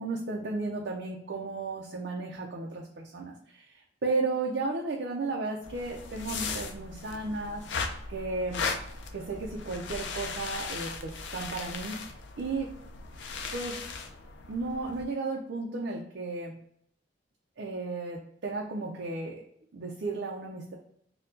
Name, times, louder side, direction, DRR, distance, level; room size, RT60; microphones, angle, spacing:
voice 1, 0.0-8.6 9.1-12.1 12.4-12.7 13.5-13.8 14.5-16.5 17.6-19.4 19.7-20.8, right 3 dB, 65° right, -1 dB, 0.5 m, -34 dB
sound 1, 5.6-15.0, left 4 dB, 80° left, 0.5 m, -38 dB
4.4 x 2.2 x 2.5 m, 0.67 s
head